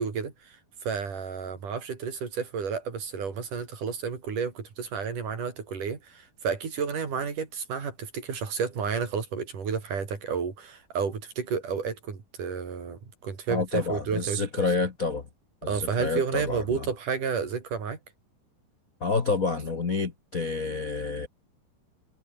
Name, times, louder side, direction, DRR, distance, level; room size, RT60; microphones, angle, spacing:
voice 1, 0.0-14.6 15.7-18.0, right 6 dB, 55° right, 5.9 m, -31 dB
voice 2, 13.5-15.2 15.6-16.6 19.0-21.3, left 4 dB, 85° left, 0.7 m, -28 dB
omnidirectional pair, 4.5 m